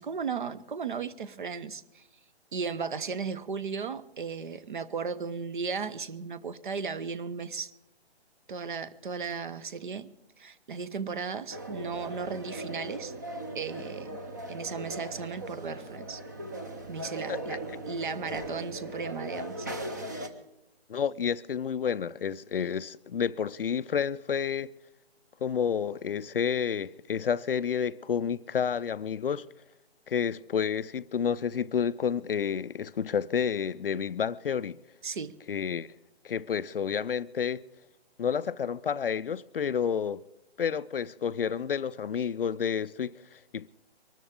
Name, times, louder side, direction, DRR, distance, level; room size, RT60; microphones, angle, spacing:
voice 1, 0.0-2.0 2.5-7.7 8.5-10.1 10.4-13.1 13.5-14.2 14.5-16.2 16.9-17.6 17.9-19.7 35.0-35.3, right 5 dB, 50° right, 0.8 m, -35 dB
sound 1, 11.5-20.3, right 1 dB, 15° right, 0.6 m, -39 dB
voice 2, 20.9-24.7 25.4-29.4 30.1-34.8 35.5-35.9 36.2-37.6 38.2-40.2 40.6-43.7, left 7 dB, 60° left, 0.5 m, -30 dB
23.5 x 13.5 x 3.6 m
hypercardioid pair, 165°, 33 cm